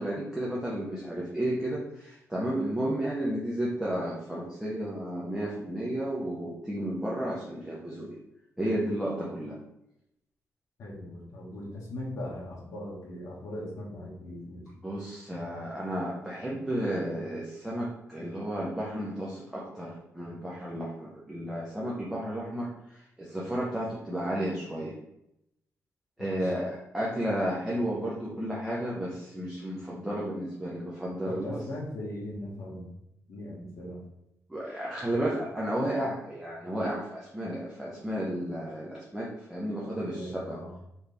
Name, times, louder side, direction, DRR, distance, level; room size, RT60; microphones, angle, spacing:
voice 1, 0.0-8.2 8.6-9.6 14.8-25.0 26.2-31.6 34.5-40.6, right 1 dB, 5° right, -6 dB, 0.7 m, -32 dB
voice 2, 10.8-14.6 26.2-26.5 31.3-32.9 33.3-34.0 39.8-40.8, left 1 dB, 75° left, -4 dB, 1.3 m, -39 dB
4.2 x 3.2 x 3.3 m, 0.83 s
wide cardioid pair, 155°, 6 cm